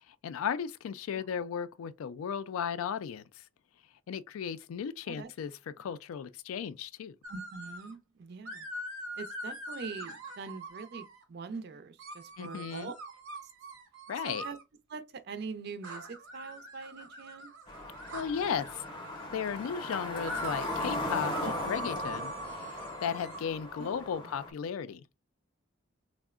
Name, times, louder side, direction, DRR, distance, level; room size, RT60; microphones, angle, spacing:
voice 1, 0.1-3.2 4.1-7.2 12.4-12.9 14.1-14.5 18.1-18.8 19.3-25.0, left 7 dB, 85° left, 0.3 m, -35 dB
sound 1, 7.2-7.9 8.4-11.2 12.0-14.6 15.8-19.3 20.2-23.4, right 1 dB, 90° right, 0.8 m, -43 dB
voice 2, 7.3-8.7 9.2-12.9 14.2-14.6 14.9-17.5 21.4-21.9 23.8-24.3, right 4 dB, 50° right, 0.4 m, -43 dB
sound 2, 17.7-24.5, left 1 dB, 25° left, 0.7 m, -38 dB
3.5 x 2.0 x 2.3 m
head